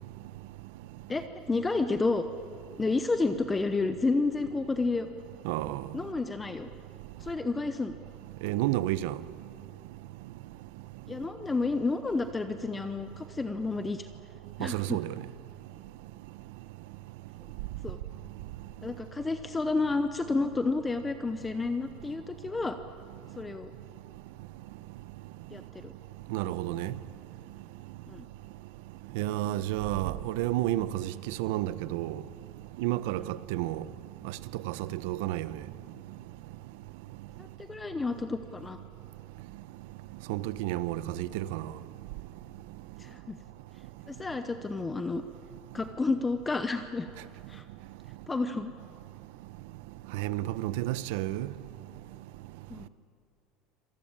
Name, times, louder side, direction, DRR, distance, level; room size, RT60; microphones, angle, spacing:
voice 1, 1.1-2.2 2.8-5.1 5.9-6.7 7.2-7.9 11.1-14.1 14.6-15.0 17.8-18.0 18.8-22.8 23.4-23.7 25.5-25.9 28.1-28.3 37.4-38.8 43.0-43.4 44.1-45.2 45.7-47.1 47.5-47.6 48.3-48.7 52.7-52.9, left 3 dB, 10° left, 0.8 m, -30 dB
voice 2, 5.4-5.8 8.4-9.2 14.6-15.1 26.3-26.9 29.1-32.2 32.8-33.8 34.6-35.5 40.3-41.7 50.1-51.5, right 15 dB, 80° right, 0.9 m, -31 dB
26.0 x 19.5 x 8.9 m
cardioid pair, 170°, 0 cm